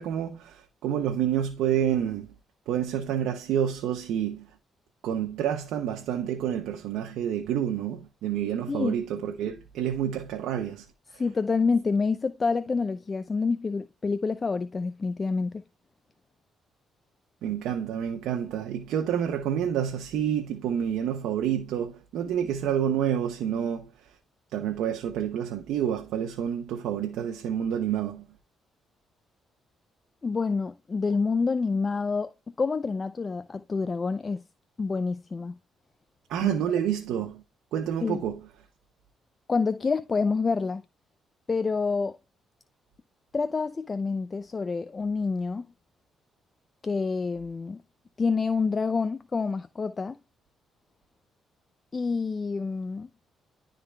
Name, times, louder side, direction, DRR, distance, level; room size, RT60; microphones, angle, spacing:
voice 1, 0.0-2.3 2.7-4.5 5.0-10.9 17.4-23.9 24.5-28.2 36.3-37.4 37.7-38.4, right 9 dB, 85° right, 0.9 m, -28 dB
voice 2, 8.7-9.0 11.1-15.6 30.2-34.4 34.8-35.5 36.4-36.5 38.0-38.2 39.5-40.8 41.5-42.2 43.3-45.7 46.8-47.8 48.2-50.2 51.9-53.1, left 4 dB, 30° left, 0.5 m, -27 dB
11.0 x 3.8 x 3.3 m
cardioid pair, 90°, 0 cm